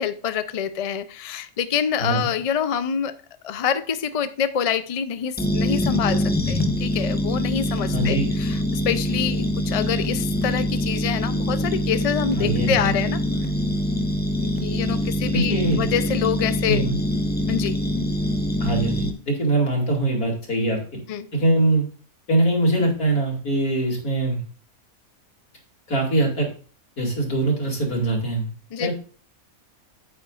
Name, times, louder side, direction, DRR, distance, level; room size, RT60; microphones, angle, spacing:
voice 1, 0.0-3.2 3.4-13.2 14.4-16.9 17.5-17.8 21.1-21.3 28.7-28.9, left 8 dB, 65° left, 0.3 m, -26 dB
sound 1, 5.4-19.1, left 1 dB, 10° left, 0.7 m, -24 dB
voice 2, 7.9-8.3 12.4-12.9 15.3-15.8 16.7-17.0 18.6-21.0 21.3-21.9 22.3-24.4 25.9-26.5 27.0-28.5 28.8-28.9, right 2 dB, 85° left, 3.1 m, -22 dB
9.0 x 8.4 x 2.4 m
omnidirectional pair, 1.5 m